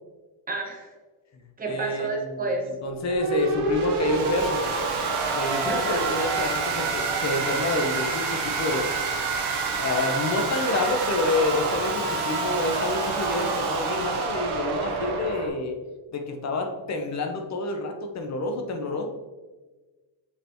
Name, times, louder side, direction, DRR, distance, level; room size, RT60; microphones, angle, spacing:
voice 1, 0.5-0.9 1.6-2.7 5.6-6.0, right 2 dB, 20° right, 1 dB, 0.9 m, -30 dB
voice 2, 1.3-2.5 2.8-4.6 5.3-8.9 9.8-15.7 16.1-19.1, left 2 dB, 35° left, 4 dB, 0.8 m, -28 dB
sound 1, 2.9-15.5, right 4 dB, 85° right, 1.3 m, -27 dB
6.6 x 5.5 x 3.0 m, 1.3 s
cardioid pair, 165°, 47 cm